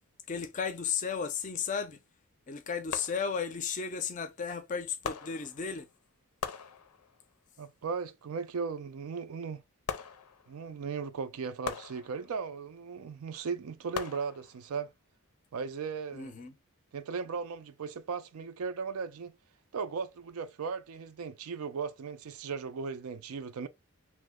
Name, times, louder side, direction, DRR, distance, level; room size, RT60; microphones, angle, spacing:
voice 1, 0.3-2.0 2.5-5.9 16.1-16.5, left 6 dB, 35° left, 0.4 m, -34 dB
sound 1, 1.4-1.5 2.9-3.7 5.0-6.0 6.4-7.4 9.9-10.8 11.6-12.6 13.9-14.8 15.4-15.5, left 6 dB, 90° left, 0.5 m, -41 dB
voice 2, 7.6-9.6 10.5-14.9 15.5-16.4 16.9-19.4 19.7-23.7, right 5 dB, 75° right, 0.4 m, -37 dB
3.1 x 2.0 x 3.5 m
head